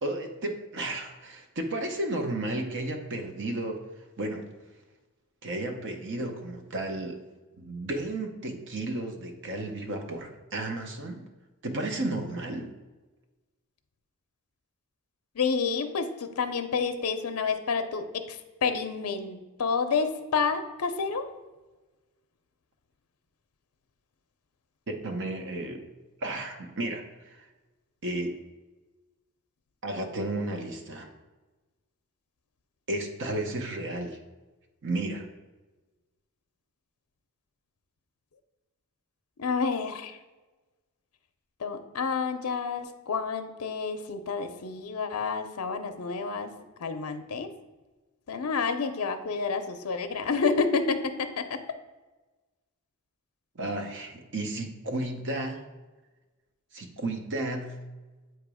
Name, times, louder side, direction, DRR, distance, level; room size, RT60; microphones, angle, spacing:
voice 1, 0.0-3.8 4.2-4.4 5.4-7.2 7.6-11.2 11.6-12.7 24.9-25.8 26.2-27.5 28.0-28.4 29.8-31.1 32.9-34.2 34.8-35.3 53.5-55.6 56.7-57.8, right 2 dB, 55° right, 4 dB, 0.8 m, -33 dB
voice 2, 15.4-21.3 39.4-40.2 41.6-46.5 46.8-47.5 48.3-51.6, left 5 dB, 75° left, 8 dB, 0.5 m, -29 dB
7.7 x 3.0 x 4.8 m, 1.2 s
head